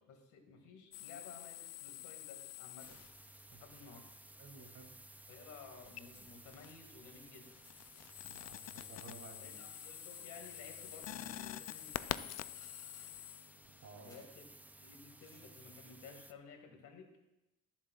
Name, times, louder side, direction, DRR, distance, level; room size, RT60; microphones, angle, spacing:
voice 1, 0.0-3.0 3.6-4.0 5.3-7.5 9.4-12.3 14.0-14.5 14.8-17.1, left 5 dB, 80° left, 3 dB, 2.0 m, -55 dB
sound 1, 0.9-3.4 5.8-6.9 7.3-13.9, left 13 dB, 60° left, 0.4 m, -47 dB
sound 2, 2.8-16.3, right 1 dB, 5° right, 0.4 m, -57 dB
voice 2, 4.4-4.9 8.2-9.6 13.8-14.2, right 4 dB, 60° right, 1 dB, 2.7 m, -55 dB
Keys jangling, 8.1-9.0 9.5-10.0 10.7-14.4 15.1-16.1, left 1 dB, 10° left, 3.2 m, -69 dB
20.0 x 7.3 x 2.3 m, 0.93 s
cardioid pair, 90°, 30 cm